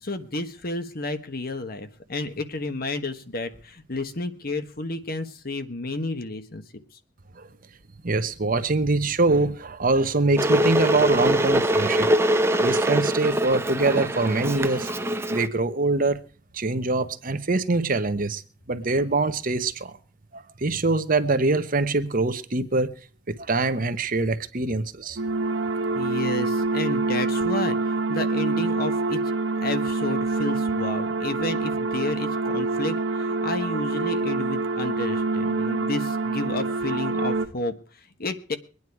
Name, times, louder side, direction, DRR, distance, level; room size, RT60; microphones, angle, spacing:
voice 1, 0.0-6.6 25.9-29.2 29.6-38.6, left 2 dB, 50° left, 1.4 m, -31 dB
voice 2, 8.0-12.1 12.6-14.9 15.3-16.2 16.5-18.4 18.7-20.0 20.3-22.9 23.3-25.2, right 3 dB, 45° right, 1.0 m, -24 dB
Water / Boiling, 10.4-15.5, right 1 dB, 15° right, 0.8 m, -23 dB
sound 1, 25.2-37.5, right 3 dB, 70° right, 1.0 m, -26 dB
23.0 x 9.6 x 4.7 m
head